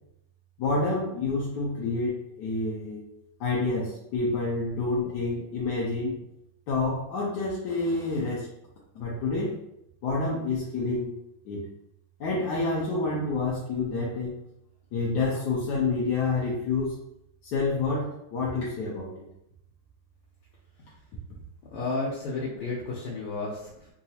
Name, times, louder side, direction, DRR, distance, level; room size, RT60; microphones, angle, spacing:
voice 1, 0.6-3.0 3.4-6.2 6.7-8.5 8.9-9.6 10.0-11.2 11.4-11.7 12.2-14.4 14.9-17.0 17.4-19.3, left 3 dB, 70° left, -5 dB, 1.0 m, -28 dB
voice 2, 21.7-23.9, left 3 dB, 90° left, -6 dB, 1.6 m, -32 dB
3.9 x 2.3 x 2.7 m, 0.80 s
omnidirectional pair, 2.4 m